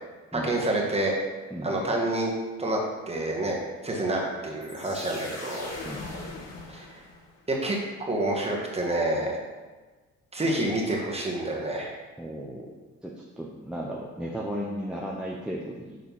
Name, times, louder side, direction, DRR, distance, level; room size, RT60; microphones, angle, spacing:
voice 1, 0.3-1.1 1.6-2.3 2.6-2.8 3.1-5.7 6.7-6.9 7.5-7.8 8.1-9.4 10.3-11.9, right 1 dB, 20° right, -2 dB, 1.8 m, -28 dB
voice 2, 1.5-1.9 5.8-6.1 12.2-12.7 13.0-16.0, equal, 5° right, -3 dB, 0.9 m, -35 dB
sound 1, 4.6-7.4, left 2 dB, 55° left, 1.9 m, -40 dB
6.4 x 4.2 x 5.6 m, 1.3 s
cardioid pair, 90°, 30 cm